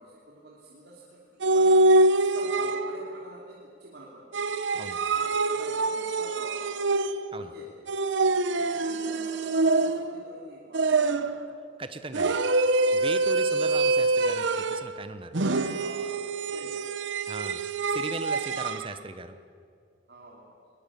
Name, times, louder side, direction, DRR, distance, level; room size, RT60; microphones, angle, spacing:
voice 1, 0.0-1.8 2.1-4.5 5.1-6.6 7.4-7.8 8.3-11.3 15.8-16.8 20.1-20.5, right 2 dB, 55° right, -4 dB, 3.1 m, -47 dB
sound 1, 1.4-3.1 4.3-7.4 7.9-10.2 10.7-11.5 12.1-14.9 15.3-18.9, right 2 dB, 75° right, 0.9 m, -25 dB
voice 2, 11.8-12.4 12.9-15.4 17.3-17.6 17.9-19.4, right 2 dB, 30° right, 10 dB, 1.1 m, -38 dB
21.5 x 20.0 x 8.6 m, 2.3 s
head